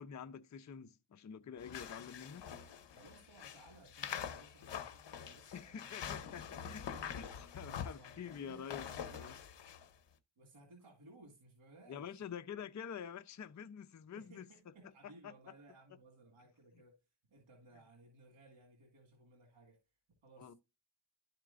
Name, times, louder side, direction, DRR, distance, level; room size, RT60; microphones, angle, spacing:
voice 1, 0.0-2.5 5.5-9.3 11.9-14.5 15.0-15.5 20.4-20.5, left 7 dB, 35° left, 0.6 m, -48 dB
sound 1, 1.6-9.9, left 8 dB, 60° left, 0.9 m, -46 dB
voice 2, 2.9-7.3 8.0-9.3 10.4-12.3 14.1-19.8 20.1-20.6, right 2 dB, 70° right, 2.0 m, -61 dB
12.0 x 4.4 x 2.5 m
cardioid pair, 80°, 48 cm